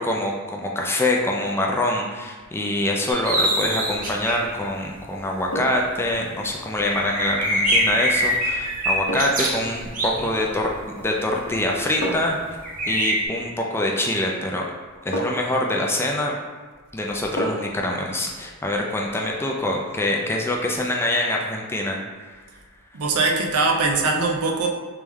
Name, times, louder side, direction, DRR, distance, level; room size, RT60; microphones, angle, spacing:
voice 1, 0.0-10.7 11.0-12.4 12.9-14.6 15.0-16.3 16.9-22.0, left 1 dB, 10° left, -1 dB, 0.3 m, -25 dB
sound 1, 3.1-4.5 5.0-5.1 5.5-5.6 5.8-5.9 6.1-6.2 6.7-10.8 11.6-11.9 12.6-13.3, equal, 35° right, 0.7 m, -24 dB
sound 2, 5.5-5.9 8.0-8.2 9.1-9.5 10.9-11.3 12.0-12.5 14.1-14.2 15.1-15.6 17.4-17.8 18.2-18.3, equal, 50° left, 0.8 m, -30 dB
voice 2, 22.9-24.7, right 3 dB, 75° right, 1 dB, 0.6 m, -21 dB
3.3 x 3.0 x 3.5 m, 1.5 s
head